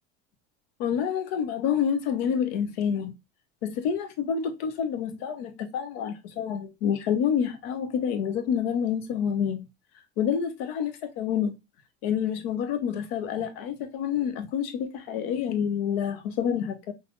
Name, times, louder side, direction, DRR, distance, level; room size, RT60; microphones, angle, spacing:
voice 1, 0.8-3.1 3.6-9.6 10.2-11.5 12.0-16.9, left 8 dB, 60° left, 0.9 m, -28 dB
5.7 x 2.6 x 2.3 m
figure-of-eight pair, 70°, 34 cm